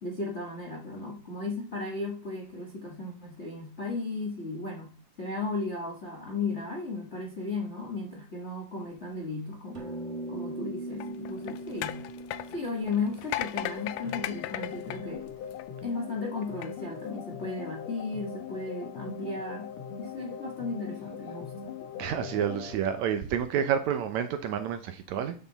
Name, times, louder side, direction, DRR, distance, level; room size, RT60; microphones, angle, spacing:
voice 1, 0.0-9.9 10.3-12.0 12.5-15.3 15.8-19.7 20.0-21.7, left 3 dB, 50° left, 1 dB, 0.8 m, -35 dB
sound 1, 9.7-14.4, right 1 dB, 55° right, 0.7 m, -40 dB
sound 2, 10.9-15.9 16.4-16.7, left 14 dB, 90° left, 1.5 m, -37 dB
sound 3, 13.5-22.8, left 7 dB, 65° left, 2.0 m, -41 dB
voice 2, 22.0-25.3, right 8 dB, 75° right, 9 dB, 1.8 m, -29 dB
11.0 x 5.9 x 4.0 m, 0.39 s
omnidirectional pair, 3.7 m